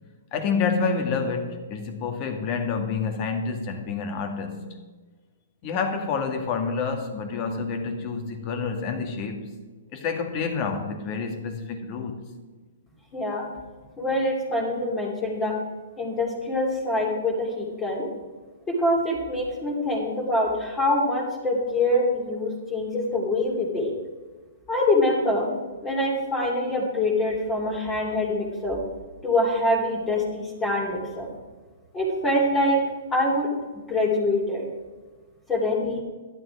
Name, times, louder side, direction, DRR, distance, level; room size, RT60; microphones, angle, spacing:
voice 1, 0.3-4.8 5.6-9.5 9.9-12.2, left 5 dB, 35° left, 5 dB, 2.0 m, -28 dB
voice 2, 13.1-13.5 14.0-15.6 16.0-18.1 18.7-23.9 24.7-25.5 25.8-28.8 29.2-31.3 31.9-32.8 33.1-33.5 33.7-34.6 35.5-36.0, left 1 dB, 15° left, -2 dB, 2.7 m, -25 dB
12.0 x 10.0 x 4.9 m, 1.3 s
hypercardioid pair, 130°, 0 cm